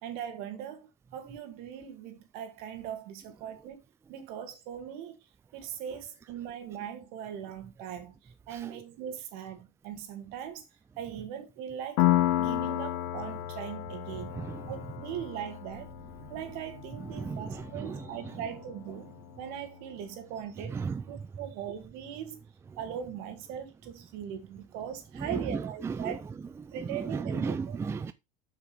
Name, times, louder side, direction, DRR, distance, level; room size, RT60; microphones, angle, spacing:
voice 1, 0.0-3.8 4.1-5.2 5.5-8.2 8.5-10.7 11.0-12.1 12.4-14.4 14.7-15.9 16.3-19.1 19.4-22.4 22.8-26.2 26.7-27.8, right 9 dB, 65° right, 2.4 m, -40 dB
voice 2, 8.5-8.8 14.1-14.8 16.2-16.3 17.0-18.4 20.6-21.1 25.1-28.1, right 5 dB, 15° right, 0.4 m, -36 dB
Piano, 12.0-19.4, left 14 dB, 75° left, 1.4 m, -32 dB
8.1 x 6.0 x 3.4 m
supercardioid pair, 120°, 17 cm